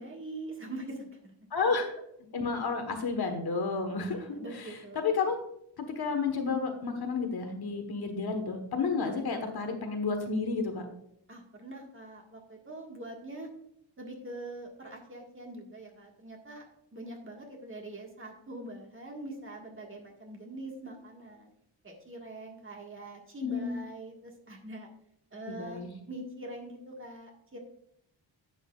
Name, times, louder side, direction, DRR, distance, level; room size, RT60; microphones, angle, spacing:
voice 1, 0.0-1.3 4.0-5.1 11.3-13.5 14.0-16.6 16.9-21.5 21.8-24.9 25.3-27.6, right 2 dB, 25° right, 0 dB, 1.7 m, -43 dB
voice 2, 1.5-1.9 2.3-4.4 4.9-5.4 6.0-10.8 23.4-23.8 25.5-25.9, left 4 dB, 55° left, 5 dB, 1.3 m, -31 dB
11.0 x 8.2 x 2.4 m, 0.72 s
wide cardioid pair, 130°, 46 cm